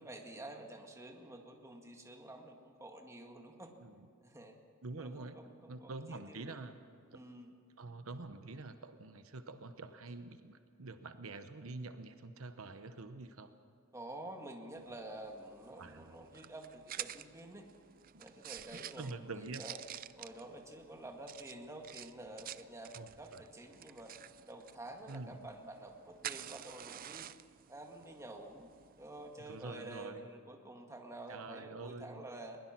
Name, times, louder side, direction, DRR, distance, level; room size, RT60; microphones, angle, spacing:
voice 1, 0.0-3.7 4.2-4.6 5.0-6.6 7.1-7.5 13.9-17.6 18.2-19.8 20.2-24.1 24.4-27.3 27.7-28.7 29.0-32.6, right 1 dB, 15° right, 3 dB, 1.9 m, -49 dB
voice 2, 4.8-5.4 5.7-6.8 7.1-7.2 7.8-13.5 15.8-16.1 18.1-18.2 18.7-19.6 22.9-23.4 25.1-25.5 29.5-30.3 31.3-32.2, right 3 dB, 85° right, 10 dB, 1.0 m, -46 dB
sound 1, 14.7-30.1, right 11 dB, 45° right, 0.4 m, -50 dB
21.5 x 20.5 x 6.0 m, 2.3 s
head